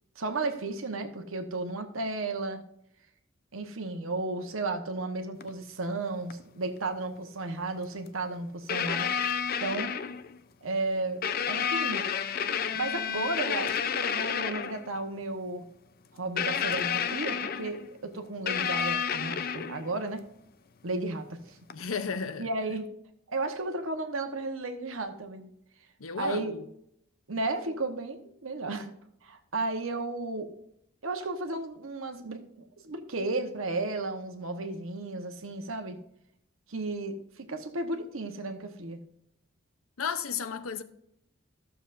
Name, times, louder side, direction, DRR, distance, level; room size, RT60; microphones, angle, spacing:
voice 1, 0.2-2.6 3.5-9.1 9.6-9.9 10.6-12.0 12.7-15.7 16.1-20.2 20.8-21.6 22.4-22.9 23.3-25.5 26.2-26.5 27.3-28.9 29.2-30.5 31.0-36.0 36.7-39.0, right 2 dB, 75° right, 1.1 m, -34 dB
sound 1, 5.4-5.5 6.3-6.4 8.1-8.2 8.7-10.4 11.2-14.9 16.4-17.9 18.5-20.0 21.7-21.8, left 7 dB, 45° left, 0.5 m, -30 dB
voice 2, 21.7-22.5 26.0-26.6 40.0-40.8, left 6 dB, 85° left, 0.8 m, -33 dB
13.5 x 7.0 x 2.6 m
head